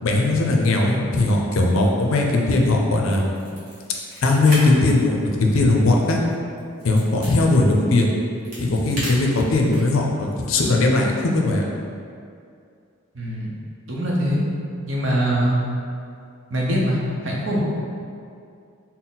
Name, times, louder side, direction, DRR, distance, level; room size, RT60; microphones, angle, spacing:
voice 1, 0.0-3.2 4.2-6.2 6.8-8.1 8.6-11.6, left 2 dB, 70° left, 0 dB, 0.5 m, -19 dB
sound 1, 3.0-4.6 4.9-5.0 5.5-7.3 8.1-10.0, equal, 35° right, 1.1 m, -35 dB
voice 2, 13.1-13.5 13.9-14.4 14.9-15.6 16.5-17.0 17.2-17.6, right 1 dB, 60° right, -4 dB, 0.7 m, -22 dB
4.0 x 2.0 x 3.9 m, 2.4 s
head